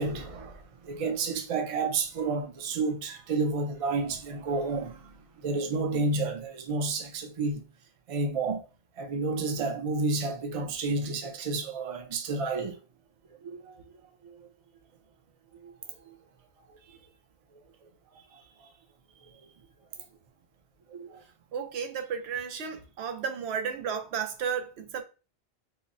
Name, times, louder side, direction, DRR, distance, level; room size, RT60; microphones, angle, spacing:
voice 1, 0.0-7.6 8.1-8.7 9.0-12.8 13.3-13.8 14.2-14.5 15.6-15.7 16.0-16.2 16.9-17.0 18.3-18.7 20.9-21.2, right 3 dB, 45° right, 0.5 m, -31 dB
voice 2, 21.5-25.0, right 7 dB, 90° right, 0.8 m, -33 dB
3.9 x 2.0 x 2.5 m
omnidirectional pair, 1.1 m